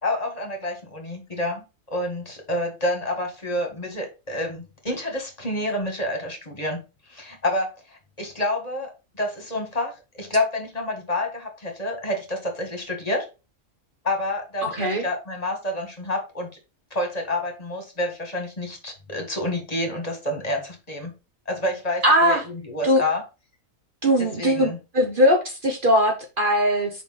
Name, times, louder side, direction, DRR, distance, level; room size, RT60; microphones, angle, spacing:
voice 1, 0.0-6.8 7.1-13.3 14.0-16.5 16.9-21.1 21.5-23.2 24.4-24.8, left 1 dB, 30° left, 3 dB, 2.0 m, -28 dB
voice 2, 14.6-15.0 22.0-22.4 22.8-23.0 24.0-26.9, equal, 40° right, 3 dB, 1.2 m, -20 dB
5.2 x 4.4 x 5.7 m, 0.29 s
omnidirectional pair, 1.4 m